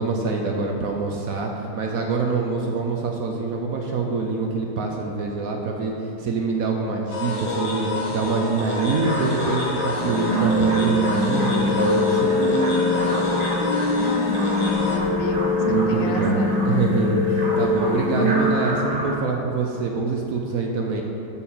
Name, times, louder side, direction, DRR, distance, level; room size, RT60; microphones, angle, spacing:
voice 1, 0.0-5.9 6.2-12.3 15.7-21.0, right 4 dB, 65° right, 1 dB, 0.9 m, -25 dB
sound 1, 7.1-15.0, left 3 dB, 55° left, 1.2 m, -28 dB
sound 2, 8.6-19.1, right 1 dB, 35° right, 1.2 m, -33 dB
sound 3, 10.0-18.5, left 1 dB, 25° left, 1.6 m, -22 dB
voice 2, 13.9-16.8, left 3 dB, 80° left, 5 dB, 1.3 m, -33 dB
6.4 x 5.5 x 7.2 m, 2.9 s
omnidirectional pair, 2.0 m